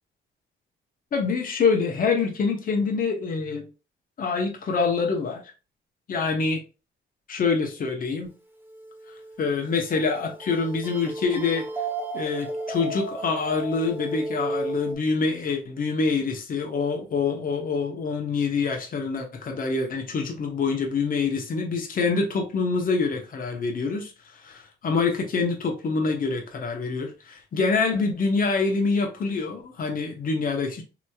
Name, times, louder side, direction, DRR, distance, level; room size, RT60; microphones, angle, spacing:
voice 1, 1.1-3.6 4.2-5.4 6.1-6.6 7.3-8.3 9.4-11.7 12.1-24.1 24.4-30.8, left 4 dB, 45° left, 0.9 m, -26 dB
sound 1, 8.7-14.9, right 2 dB, 10° right, 0.7 m, -34 dB
2.9 x 2.9 x 2.2 m
cardioid pair, 90°, 20 cm